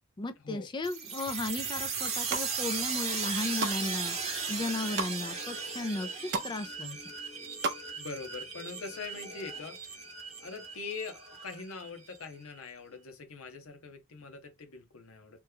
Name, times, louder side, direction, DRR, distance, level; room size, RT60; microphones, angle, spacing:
voice 1, 0.2-4.1 4.5-7.0, left 2 dB, 20° left, 0.4 m, -35 dB
sound 1, 0.8-12.2, right 5 dB, 30° right, 0.9 m, -37 dB
sound 2, 2.0-2.5 3.0-3.8 4.2-5.1 5.7-5.8 6.0-6.5 6.8-7.8 8.1-8.2, right 4 dB, 55° right, 0.6 m, -35 dB
voice 2, 7.6-10.0 10.4-15.4, left 4 dB, 90° left, 0.8 m, -43 dB
3.1 x 2.2 x 3.3 m
head